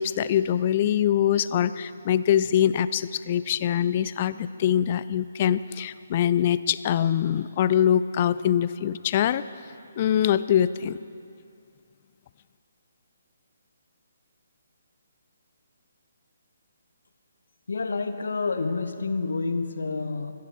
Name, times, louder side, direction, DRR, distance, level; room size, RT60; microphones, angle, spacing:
voice 1, 0.0-9.4 10.0-11.0, left 10 dB, 35° left, 15 dB, 0.4 m, -23 dB
voice 2, 17.7-20.3, left 4 dB, 65° left, 8 dB, 1.0 m, -28 dB
25.0 x 10.5 x 4.2 m, 2.4 s
figure-of-eight pair, 140°, 0 cm